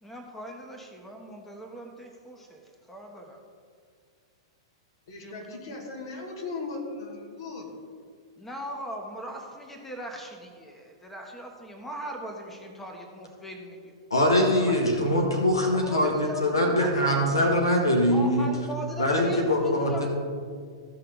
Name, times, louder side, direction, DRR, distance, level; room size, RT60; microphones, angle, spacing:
voice 1, 0.0-3.4 5.2-5.4 8.4-13.9 14.6-15.4 15.7-17.6 18.1-20.1, right 1 dB, 10° left, 2 dB, 1.3 m, -40 dB
voice 2, 5.1-7.7, left 3 dB, 65° left, -1 dB, 2.5 m, -37 dB
voice 3, 14.1-18.5 19.0-20.1, left 1 dB, 85° left, 0 dB, 1.6 m, -23 dB
15.0 x 5.6 x 3.9 m, 2.1 s
figure-of-eight pair, 105°, 2 cm